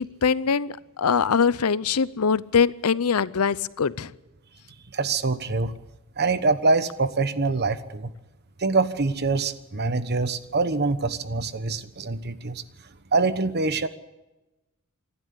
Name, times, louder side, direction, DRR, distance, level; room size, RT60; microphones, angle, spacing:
voice 1, 0.0-4.1, left 6 dB, 80° left, 19 dB, 0.6 m, -23 dB
voice 2, 4.9-5.7 6.2-8.1 8.6-12.6 13.1-13.9, right 3 dB, 50° right, 12 dB, 1.1 m, -24 dB
26.0 x 12.0 x 8.5 m, 1.0 s
head